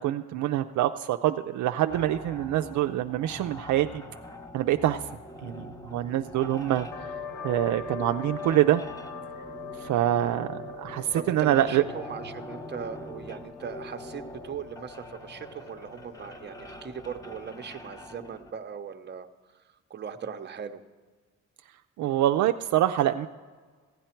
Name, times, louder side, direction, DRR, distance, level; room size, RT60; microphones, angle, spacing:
voice 1, 0.0-4.0 4.5-5.0 5.4-6.9 7.4-8.8 9.8-11.8 22.0-23.3, right 13 dB, 70° right, 7 dB, 0.5 m, -25 dB
sound 1, 1.9-18.5, equal, 10° left, 0.9 m, -44 dB
sound 2, 6.9-18.2, left 6 dB, 85° left, 1.0 m, -42 dB
voice 2, 11.1-19.3 19.9-20.8, right 7 dB, 35° right, 7 dB, 0.8 m, -39 dB
16.0 x 9.1 x 4.4 m, 1.4 s
cardioid pair, 90°, 30 cm